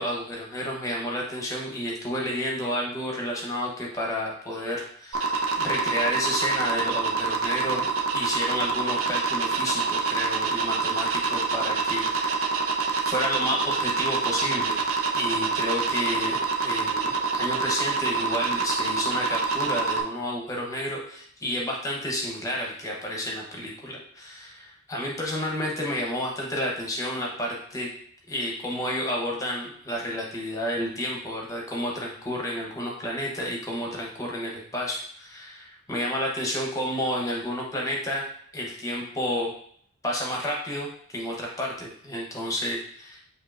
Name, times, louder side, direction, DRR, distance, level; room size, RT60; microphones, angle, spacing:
voice 1, 0.0-12.7 13.1-14.8 15.1-27.9 28.3-39.5 40.0-43.2, equal, 15° left, -2 dB, 0.7 m, -31 dB
sound 1, 5.1-20.0, right 4 dB, 80° right, 0.5 m, -26 dB
7.2 x 2.7 x 2.4 m, 0.63 s
head